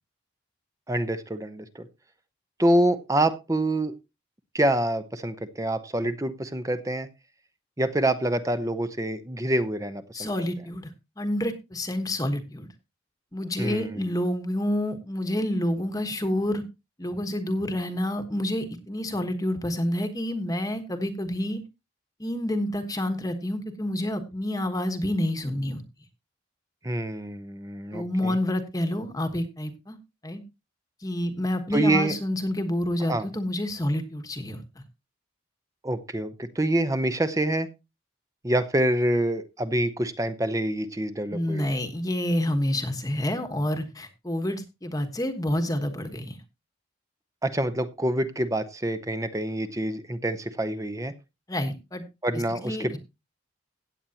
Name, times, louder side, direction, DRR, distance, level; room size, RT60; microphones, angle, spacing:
voice 1, 0.9-1.9 2.6-3.9 4.5-7.1 7.8-10.3 13.6-14.1 26.8-28.4 31.7-32.1 33.1-33.3 35.8-37.7 38.4-41.7 47.4-51.1 52.2-53.0, right 1 dB, 15° right, 11 dB, 0.8 m, -26 dB
voice 2, 10.1-10.8 11.2-12.7 13.3-16.6 17.0-21.6 22.2-25.8 27.9-30.0 30.2-30.4 31.0-34.8 41.3-46.4 51.5-52.0 52.6-53.0, left 1 dB, 20° left, 7 dB, 1.2 m, -28 dB
16.5 x 8.5 x 2.9 m, 0.25 s
head